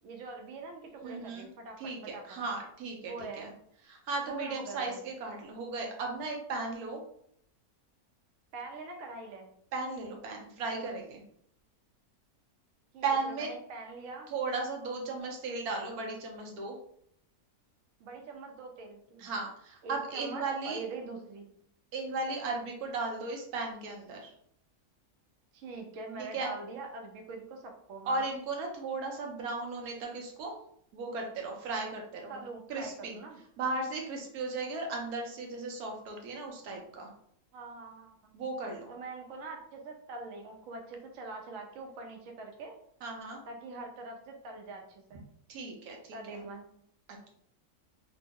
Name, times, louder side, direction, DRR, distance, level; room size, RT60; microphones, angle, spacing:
voice 1, 0.0-2.4 3.1-3.5 4.3-5.0 8.5-9.5 12.9-14.3 18.0-19.3 19.8-21.5 25.5-28.3 32.3-33.4 37.5-38.3 38.9-42.8 43.5-45.3 46.1-46.7, right 3 dB, 70° right, 2 dB, 0.9 m, -43 dB
voice 2, 1.0-1.5 1.8-3.5 3.9-7.0 9.7-11.2 13.0-13.5 14.3-16.8 19.2-20.8 21.9-24.3 26.3-26.5 28.0-30.6 30.9-32.4 32.7-33.2 33.6-37.1 38.3-38.9 43.0-43.4 45.5-46.4, right 3 dB, 90° right, 1 dB, 1.2 m, -36 dB
3.0 x 2.0 x 3.5 m, 0.68 s
omnidirectional pair, 1.5 m